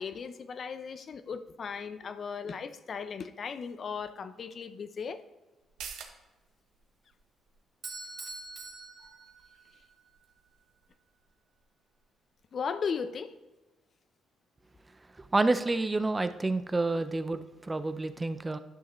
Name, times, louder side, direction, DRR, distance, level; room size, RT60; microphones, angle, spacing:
voice 1, 0.0-5.2 12.5-13.3, left 6 dB, 50° left, 11 dB, 0.5 m, -37 dB
sound 1, 5.6-12.7 13.1-13.2, right 7 dB, 85° right, 1.0 m, -52 dB
Bell / Doorbell, 7.8-9.9, right 3 dB, 40° right, 1.8 m, -44 dB
voice 2, 15.2-18.6, right 2 dB, 20° right, 11 dB, 0.5 m, -29 dB
10.5 x 6.3 x 3.0 m, 1.1 s
cardioid pair, 90°, 0 cm